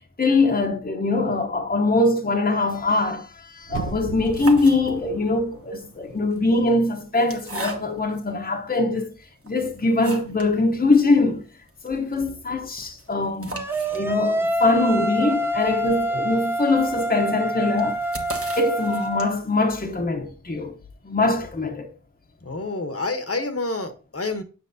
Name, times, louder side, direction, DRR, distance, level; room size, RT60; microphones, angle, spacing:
voice 1, 0.2-9.1 9.5-11.4 11.8-13.6 13.9-18.0 18.6-20.7 21.0-21.9, left 2 dB, 30° left, 0.8 m, -22 dB
sound 1, 3.6-6.6 6.9-7.0, right 5 dB, 90° right, 0.6 m, -36 dB
sound 2, 4.1-5.3 6.2-8.2 8.8-8.9 9.4-10.6 10.9-11.0 11.2-11.3 11.7-19.6, right 2 dB, 45° right, 1.2 m, -39 dB
sound 3, 13.5-19.3, right 1 dB, 5° right, 0.6 m, -26 dB
voice 2, 22.4-24.4, left 3 dB, 45° left, 1.0 m, -28 dB
7.8 x 5.9 x 2.6 m
wide cardioid pair, 60°, 32 cm